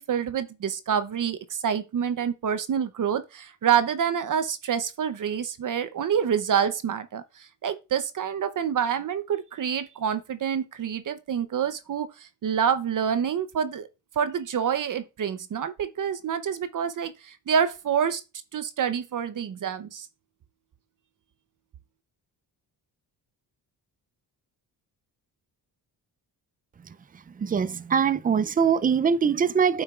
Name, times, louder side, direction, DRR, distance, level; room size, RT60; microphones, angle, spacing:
voice 1, 0.0-13.9 14.2-18.2 18.5-20.1, right 8 dB, 50° right, 0.7 m, -27 dB
voice 2, 27.4-29.8, right 6 dB, 20° right, 0.4 m, -22 dB
8.8 x 6.2 x 2.4 m
cardioid pair, 100°, 41 cm